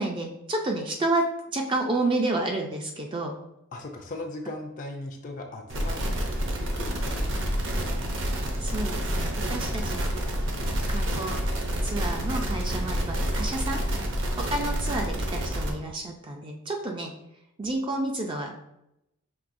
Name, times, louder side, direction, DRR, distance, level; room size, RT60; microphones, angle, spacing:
voice 1, 0.0-3.3 8.6-10.1 10.9-11.4 11.8-13.8 14.4-17.1 17.6-18.5, right 2 dB, 25° right, 2 dB, 0.4 m, -30 dB
voice 2, 3.7-6.0 6.6-7.9, left 2 dB, 40° left, 3 dB, 0.4 m, -38 dB
sound 1, 5.7-15.7, equal, 60° right, 0.8 m, -28 dB
6.0 x 3.3 x 2.5 m, 0.84 s
head